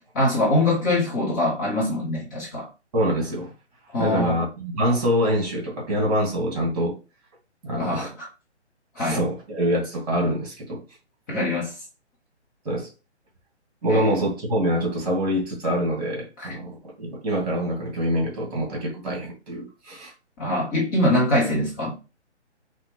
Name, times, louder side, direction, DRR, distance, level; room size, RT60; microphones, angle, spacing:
voice 1, 0.1-2.7 3.9-4.4 7.8-8.3 8.9-9.2 11.3-11.8 13.9-14.2 16.4-16.5 20.4-21.9, left 1 dB, 15° left, 0.8 m, -23 dB
voice 2, 2.9-3.5 4.0-7.0 7.6-8.1 9.0-10.8 12.7-12.9 13.8-20.1 20.5-20.6, equal, 35° right, 1.9 m, -25 dB
5.7 x 2.2 x 3.1 m
figure-of-eight pair, 145°, 35 cm